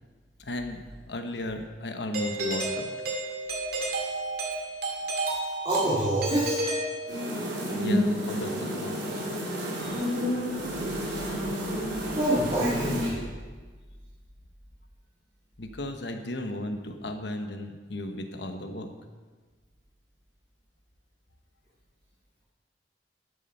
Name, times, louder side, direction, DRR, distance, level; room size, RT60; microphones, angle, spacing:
voice 1, 0.4-0.8 1.1-2.9 7.8-9.3 9.8-10.1 15.6-18.9, left 1 dB, 75° left, 6 dB, 1.1 m, -35 dB
Doorbell, 2.1-7.6, right 2 dB, 60° right, 2.1 m, -31 dB
voice 2, 5.6-6.6 12.1-13.3, right 1 dB, 35° right, -9 dB, 2.4 m, -26 dB
sound 1, 7.1-13.1, equal, 80° right, 3.6 m, -30 dB
12.0 x 7.8 x 5.6 m, 1.4 s
head